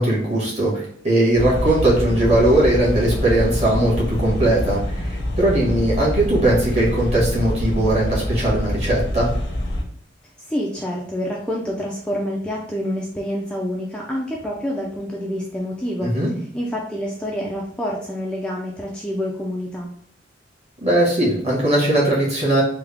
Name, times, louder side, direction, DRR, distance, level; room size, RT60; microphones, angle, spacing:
voice 1, 0.0-9.3 16.0-16.3 20.8-22.6, right 1 dB, 35° right, -5 dB, 1.5 m, -19 dB
sound 1, 1.3-9.8, left 1 dB, 85° left, 0.8 m, -25 dB
voice 2, 10.4-16.1 16.5-19.9, equal, 5° left, -3 dB, 0.4 m, -27 dB
3.4 x 2.1 x 3.4 m, 0.66 s
head